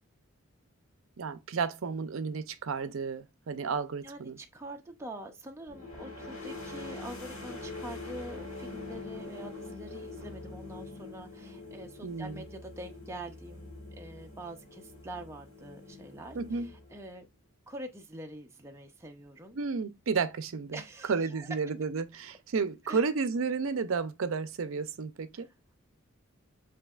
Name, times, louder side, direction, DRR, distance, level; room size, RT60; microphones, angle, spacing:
voice 1, 1.2-4.4 12.0-12.4 16.3-16.7 19.5-20.8 21.1-25.5, right 5 dB, 70° right, 0.5 m, -32 dB
voice 2, 4.0-13.7 14.0-17.3 17.7-19.6 20.7-21.5 22.8-23.0 25.3-25.5, right 1 dB, 15° right, 0.5 m, -45 dB
sound 1, 5.7-17.2, left 2 dB, 85° left, 1.4 m, -44 dB
7.9 x 2.7 x 2.3 m
head